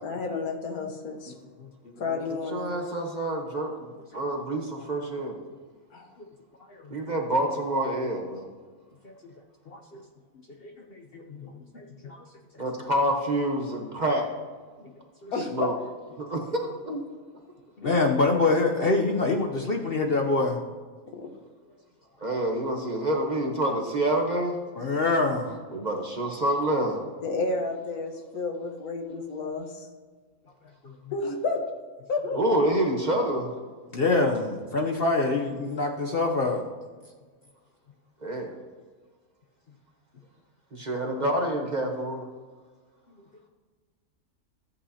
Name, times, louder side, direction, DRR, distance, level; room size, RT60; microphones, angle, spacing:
voice 1, 0.0-1.3 2.0-2.7 5.9-6.1 15.3-15.7 16.9-17.0 17.8-18.0 21.1-21.3 27.2-29.9 31.1-31.6 32.1-32.4, left 3 dB, 80° left, 3 dB, 1.6 m, -31 dB
voice 2, 2.5-5.4 6.9-8.5 12.6-14.3 15.5-15.7 16.2-16.7 22.2-24.6 25.7-27.0 32.4-33.5 38.2-38.5 40.7-42.2, right 1 dB, 35° right, 1 dB, 1.0 m, -27 dB
voice 3, 9.7-10.0 10.6-12.2 14.8-14.9 15.2-15.3 17.8-20.6 24.8-25.6 30.8-30.9 33.9-36.7, left 3 dB, 50° left, 2 dB, 0.8 m, -26 dB
14.0 x 8.3 x 2.8 m, 1.5 s
omnidirectional pair, 1.5 m